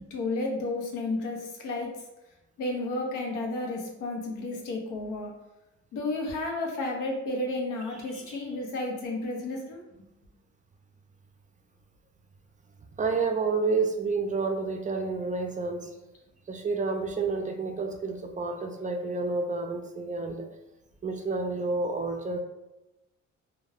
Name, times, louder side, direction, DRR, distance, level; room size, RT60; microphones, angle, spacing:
voice 1, 0.1-1.9 2.6-5.3 5.9-9.8, left 2 dB, 90° left, 0 dB, 0.7 m, -32 dB
voice 2, 13.0-15.9 16.5-20.5 21.0-22.4, right 4 dB, 25° right, 4 dB, 0.4 m, -29 dB
2.2 x 2.2 x 3.3 m, 0.97 s
cardioid pair, 90°, 30 cm